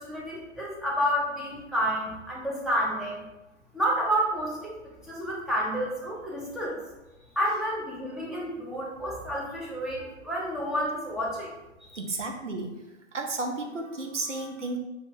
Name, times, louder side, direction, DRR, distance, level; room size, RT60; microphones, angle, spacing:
voice 1, 0.0-3.2 3.7-6.8 7.3-11.5 11.8-11.9, equal, ahead, -5 dB, 0.8 m, -30 dB
voice 2, 11.9-12.8 13.1-14.8, right 2 dB, 80° right, 3 dB, 0.9 m, -33 dB
5.0 x 2.6 x 3.7 m, 1.0 s
figure-of-eight pair, 115°, 36 cm